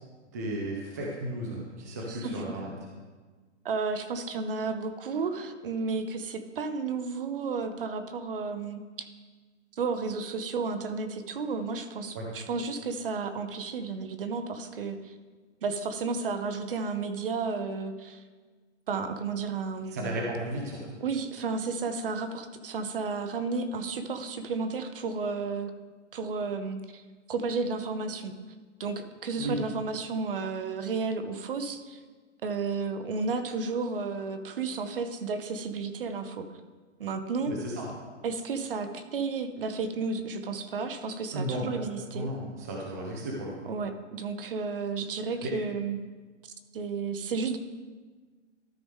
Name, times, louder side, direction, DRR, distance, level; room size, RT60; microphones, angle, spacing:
voice 1, 0.3-2.7 12.1-12.3 19.9-21.0 29.4-29.6 37.4-37.9 41.3-41.8 42.1-43.6 45.4-45.5, right 1 dB, 15° right, -2 dB, 0.5 m, -34 dB
voice 2, 2.1-2.5 3.6-9.1 9.8-15.1 15.6-18.2 18.9-20.0 21.0-25.7 26.1-27.0 27.3-28.3 28.8-32.0 32.4-36.5 37.0-37.6 38.2-42.3 43.7-46.0 46.7-47.6, right 4 dB, 50° right, 8 dB, 0.8 m, -32 dB
13.0 x 4.9 x 3.6 m, 1.4 s
hypercardioid pair, 160°, 37 cm